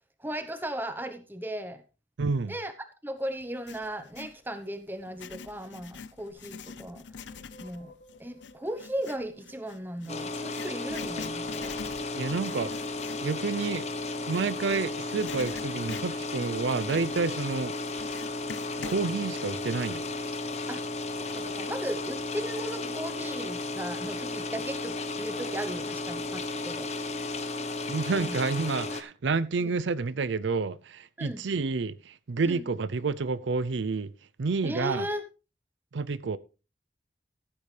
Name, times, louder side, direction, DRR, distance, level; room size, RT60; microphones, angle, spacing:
voice 1, 0.2-1.8 2.5-2.7 3.0-7.0 7.6-7.9 8.2-11.8 20.7-20.8 21.2-26.9 28.1-28.4 29.6-29.8 31.2-31.4 32.4-32.6 34.6-35.2, right 1 dB, 10° right, 0.9 m, -36 dB
voice 2, 2.2-2.5 12.1-12.7 13.2-13.9 14.3-17.7 18.1-18.2 18.8-20.1 27.9-34.1 34.4-35.1 35.9-36.4, right 4 dB, 80° right, 0.5 m, -29 dB
Writing, 3.4-4.4 5.0-14.8 15.2-19.0, left 5 dB, 80° left, 0.7 m, -45 dB
sound 1, 6.3-11.2, equal, 60° left, 2.3 m, -57 dB
sound 2, 10.1-29.0, left 2 dB, 35° left, 1.0 m, -34 dB
14.5 x 8.7 x 3.3 m
head